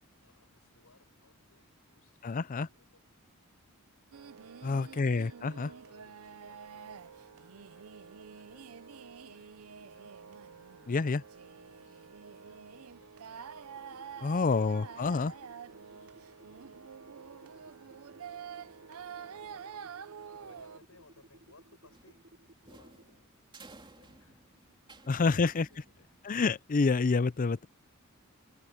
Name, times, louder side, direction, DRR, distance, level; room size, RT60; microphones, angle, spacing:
voice 1, 0.2-3.0 4.3-5.2 5.5-10.1 10.7-12.1 12.4-13.2 14.2-15.6 15.9-18.3 18.7-22.3 22.7-23.3 23.7-26.2, left 3 dB, 75° left, 8.0 m, -65 dB
voice 2, 2.2-2.7 4.6-5.7 10.9-11.2 14.2-15.3 25.1-25.7 26.2-27.7, left 4 dB, 40° left, 0.5 m, -28 dB
sound 1, 4.1-20.8, right 7 dB, 75° right, 0.6 m, -48 dB
sound 2, 13.8-23.1, right 1 dB, 45° right, 7.9 m, -58 dB
sound 3, 21.9-26.4, right 3 dB, 20° right, 3.4 m, -56 dB
head